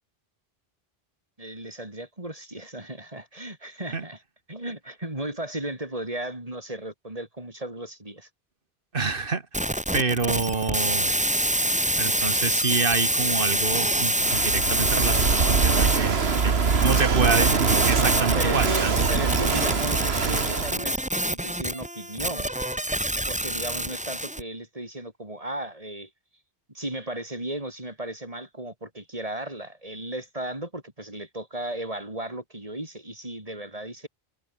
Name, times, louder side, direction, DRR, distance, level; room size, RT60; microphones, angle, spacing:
voice 1, 1.4-4.2 4.5-8.3 18.3-22.5 23.3-26.1 26.7-34.1, right 1 dB, 35° right, 4.8 m, -35 dB
voice 2, 8.9-9.4 9.9-11.1 12.0-17.6 17.9-18.9, right 4 dB, 60° right, 1.9 m, -27 dB
sound 1, 9.5-24.4, right 1 dB, 5° right, 1.4 m, -26 dB
Walk footsteps / Wind / Waves surf, 14.2-20.8, right 5 dB, 80° right, 1.8 m, -23 dB
omnidirectional pair, 1.0 m